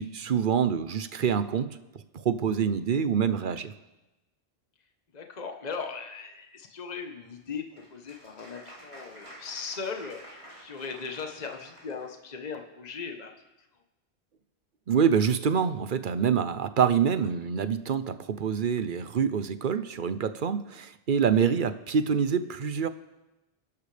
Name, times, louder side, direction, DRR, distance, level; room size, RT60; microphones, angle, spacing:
voice 1, 0.0-1.7 2.1-3.7 14.9-22.9, right 7 dB, 55° right, 12 dB, 0.8 m, -26 dB
voice 2, 5.1-10.2 10.6-13.3, left 5 dB, 40° left, 4 dB, 1.2 m, -38 dB
Applause, 7.4-12.2, right 1 dB, 30° right, 3.0 m, -50 dB
28.5 x 12.0 x 3.4 m, 1.0 s
omnidirectional pair, 1.1 m